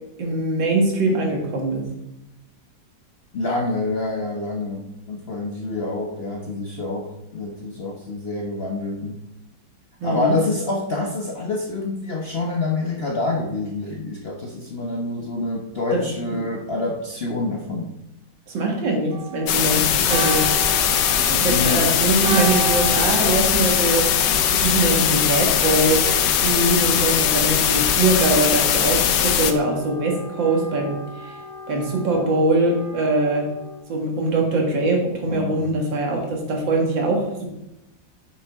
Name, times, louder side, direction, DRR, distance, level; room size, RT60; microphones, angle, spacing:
voice 1, 0.0-1.9 10.0-10.4 15.9-16.0 18.5-20.7 21.2-24.1 24.5-26.0 26.4-31.3 31.7-33.5 33.9-37.5, right 2 dB, 85° right, 0 dB, 2.5 m, -22 dB
voice 2, 3.3-9.2 10.0-17.9 21.5-21.9 35.3-35.7, left 2 dB, 50° left, 0 dB, 0.7 m, -27 dB
Church bell, 19.1-24.8, right 7 dB, 55° right, 1.2 m, -33 dB
sound 1, 19.5-29.5, left 9 dB, 75° left, 1.3 m, -20 dB
Wind instrument woodwind instrument, 19.9-33.9, left 2 dB, 10° left, 1.6 m, -39 dB
8.3 x 6.6 x 3.5 m, 0.90 s
omnidirectional pair, 2.0 m